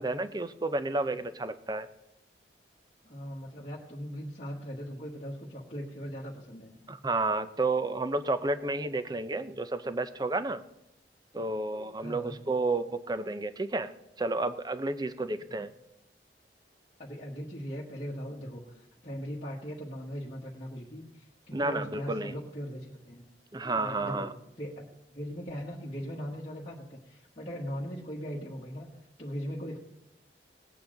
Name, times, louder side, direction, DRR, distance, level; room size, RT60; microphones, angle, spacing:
voice 1, 0.0-1.9 6.9-10.6 11.3-15.7 21.5-22.4 23.5-24.3, right 2 dB, 25° right, 12 dB, 0.6 m, -31 dB
voice 2, 3.0-6.8 12.0-12.4 15.5-15.6 17.0-23.2 23.8-24.3 24.6-28.9 29.2-29.8, equal, 35° left, -5 dB, 1.4 m, -39 dB
18.0 x 8.4 x 3.8 m, 0.83 s
head